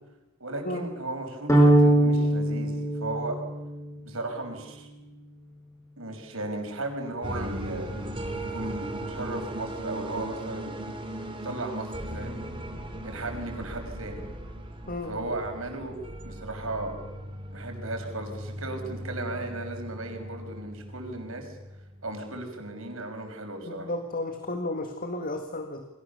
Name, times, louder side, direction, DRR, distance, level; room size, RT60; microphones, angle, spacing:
voice 1, 0.4-3.4 4.0-4.9 6.0-7.9 8.4-10.8 11.3-12.4 13.0-14.2 15.1-17.0 17.5-21.6 22.0-23.9, right 2 dB, 75° right, 4 dB, 5.7 m, -36 dB
sound 1, 1.5-3.8, right 1 dB, 15° left, 6.3 m, -21 dB
sound 2, 7.2-22.3, right 1 dB, 25° right, 3.1 m, -38 dB
voice 2, 14.9-15.3 23.7-25.9, left 2 dB, 40° left, 5 dB, 2.0 m, -33 dB
29.5 x 23.5 x 7.0 m, 1.0 s
head